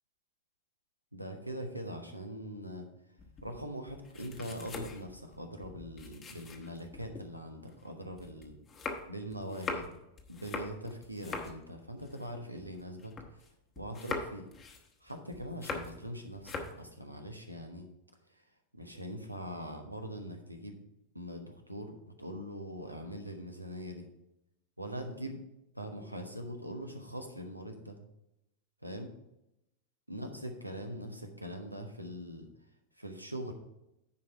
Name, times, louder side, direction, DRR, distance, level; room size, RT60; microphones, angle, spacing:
voice 1, 1.1-2.9 3.4-8.6 9.1-9.9 10.3-13.4 13.8-14.5 15.0-17.9 18.3-18.4 18.7-20.8 21.1-24.1 24.8-25.4 25.7-28.0 28.8-29.1 30.1-32.5 33.0-33.5, equal, 90° right, 4 dB, 1.2 m, -42 dB
sound 1, 3.2-7.2 7.7-13.5 13.8-16.1 16.3-16.8, left 3 dB, 25° left, 1.2 m, -42 dB
9.9 x 5.1 x 4.6 m, 0.86 s
figure-of-eight pair, 90°, 0 cm